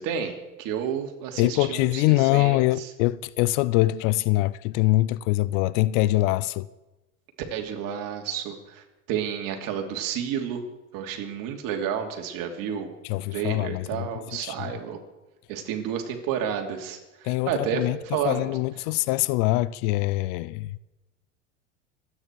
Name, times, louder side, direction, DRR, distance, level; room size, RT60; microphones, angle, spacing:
voice 1, 0.0-2.9 7.5-10.6 10.9-12.9 13.3-15.0 15.5-18.5, right 8 dB, 55° right, 3.0 m, -31 dB
voice 2, 1.4-6.7 13.1-14.1 14.4-14.7 17.2-18.0 18.2-20.8, left 18 dB, 65° left, 0.7 m, -24 dB
25.5 x 9.6 x 4.7 m
hypercardioid pair, 95°, 39 cm